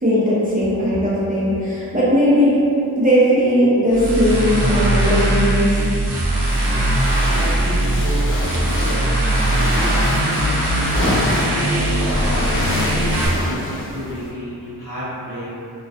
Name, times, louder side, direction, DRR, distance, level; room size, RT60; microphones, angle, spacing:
voice 1, 0.0-2.6 3.0-5.8, equal, 20° right, -10 dB, 0.5 m, -17 dB
sound 1, 3.9-13.3, right 1 dB, 75° right, 0.5 m, -20 dB
sound 2, 6.5-14.3, equal, 30° left, 0.5 m, -26 dB
voice 2, 6.6-15.5, equal, 50° left, -11 dB, 1.0 m, -32 dB
2.2 x 2.1 x 2.7 m, 2.7 s
wide cardioid pair, 60°, 41 cm